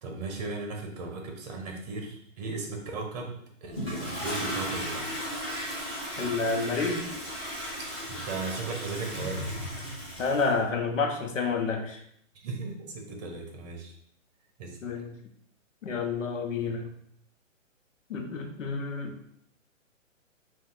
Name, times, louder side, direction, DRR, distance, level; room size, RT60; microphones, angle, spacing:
voice 1, 0.0-5.1 8.0-9.6 12.3-14.0 14.6-14.8, right 3 dB, 30° right, 2 dB, 0.9 m, -37 dB
Toilet flush, 3.7-10.5, equal, 10° left, 1.3 m, -35 dB
voice 2, 6.2-7.0 10.2-12.0 14.8-15.1 15.8-16.9 18.1-19.3, left 4 dB, 70° left, 3 dB, 1.0 m, -29 dB
4.2 x 2.6 x 3.9 m, 0.68 s
hypercardioid pair, 150°, 40 cm